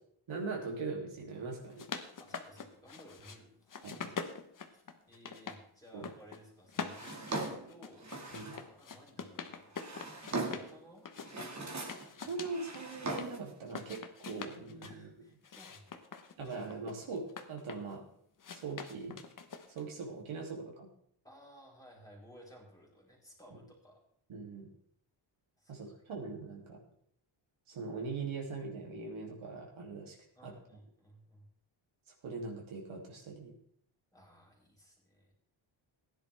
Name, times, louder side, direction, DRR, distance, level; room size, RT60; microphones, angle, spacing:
voice 1, 0.3-1.9 3.8-4.1 5.9-6.1 8.3-8.5 11.8-15.1 16.4-18.0 18.5-19.2 19.7-20.9 23.5-23.6 24.3-24.7 25.7-26.8 27.7-30.2 30.4-30.5 32.2-33.5, right 4 dB, 75° right, 0 dB, 3.0 m, -41 dB
sound 1, 1.5-3.4 3.7-5.6 5.9-6.4 6.7-10.7 11.0-13.3 13.6-15.0 15.4-17.9 18.4-19.9, left 5 dB, 40° left, 1.1 m, -44 dB
voice 2, 2.2-3.9 4.6-8.1 8.7-9.8 10.3-11.1 12.1-12.3 14.8-16.1 21.2-24.0 25.6-26.0 30.3-31.5 34.1-35.3, equal, 5° left, -2 dB, 4.2 m, -58 dB
Drawer open or close, 6.9-8.7 9.5-10.8 11.2-12.1 12.4-13.5, right 2 dB, 35° right, 2.1 m, -40 dB
16.0 x 10.5 x 3.5 m, 0.66 s
wide cardioid pair, 125°, 48 cm